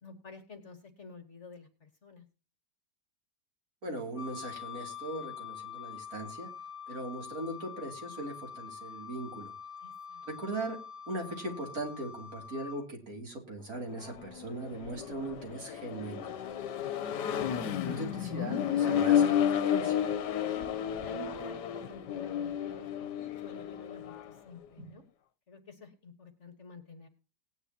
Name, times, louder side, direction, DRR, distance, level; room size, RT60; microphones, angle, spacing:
voice 1, 0.0-2.2 9.8-10.2 16.8-17.4 20.4-20.8 21.0-25.0 25.5-27.1, left 3 dB, 45° left, 6 dB, 1.6 m, -50 dB
voice 2, 3.8-6.5 6.9-9.5 10.2-10.8 11.1-16.3 17.8-20.0 24.8-24.9, right 2 dB, 55° right, 1 dB, 3.4 m, -39 dB
Wind instrument woodwind instrument, 4.2-12.8, left 7 dB, 30° left, 2.8 m, -45 dB
Accelerating revving vroom, 13.9-24.3, left 9 dB, 70° left, 1.4 m, -31 dB
18.5 x 10.0 x 2.8 m, 0.31 s
omnidirectional pair, 1.9 m